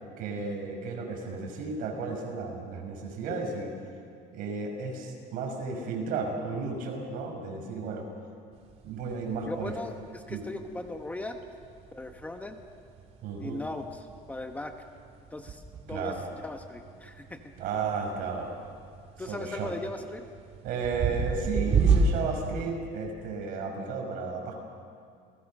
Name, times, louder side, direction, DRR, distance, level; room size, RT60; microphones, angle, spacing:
voice 1, 0.2-3.7 4.3-8.1 8.8-9.7 10.3-10.4 13.2-13.6 15.9-16.2 17.6-18.5 19.3-19.7 20.6-24.5, right 4 dB, 55° right, 2 dB, 6.2 m, -33 dB
sound 1, 8.5-22.7, right 4 dB, 40° right, 2.4 m, -32 dB
voice 2, 9.4-11.4 11.9-12.6 13.4-14.7 15.3-15.6 15.9-16.2 16.4-17.5 19.2-20.2, left 2 dB, 10° left, 5 dB, 1.1 m, -38 dB
29.0 x 20.0 x 6.6 m, 2.3 s
cardioid pair, 145°, 17 cm